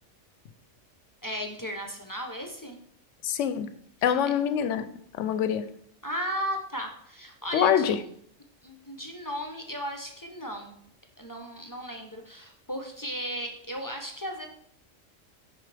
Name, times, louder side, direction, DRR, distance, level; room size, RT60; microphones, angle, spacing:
voice 1, 1.2-2.8 4.0-4.2 6.0-8.0 8.6-10.7 11.2-14.5, equal, 20° left, 3 dB, 0.6 m, -35 dB
voice 2, 3.2-3.7 4.0-4.9 5.2-5.7 7.5-8.0, left 9 dB, 75° left, 11 dB, 0.9 m, -24 dB
10.5 x 3.9 x 3.3 m, 0.67 s
omnidirectional pair, 1.3 m